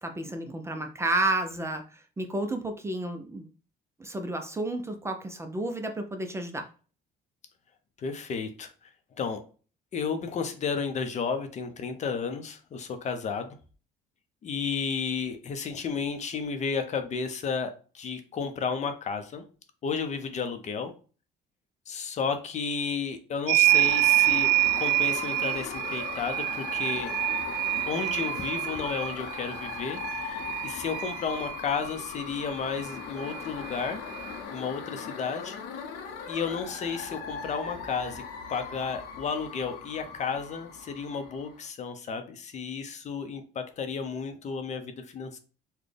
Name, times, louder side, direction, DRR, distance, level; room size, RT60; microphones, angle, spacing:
voice 1, 0.0-3.5 4.0-6.7, right 2 dB, 15° right, 5 dB, 0.5 m, -31 dB
voice 2, 8.0-8.7 9.2-9.4 9.9-13.6 14.4-19.4 19.8-20.9 21.9-27.1 27.9-34.0 34.5-35.6 36.3-38.2 38.5-45.4, left 5 dB, 45° left, 8 dB, 0.6 m, -32 dB
sound 1, 23.5-31.6 32.9-33.0 33.2-34.3, right 17 dB, 75° right, 0.4 m, -27 dB
sound 2, 23.6-41.6, left 6 dB, 85° left, 0.8 m, -39 dB
4.1 x 2.2 x 3.3 m, 0.37 s
cardioid pair, 110°, 17 cm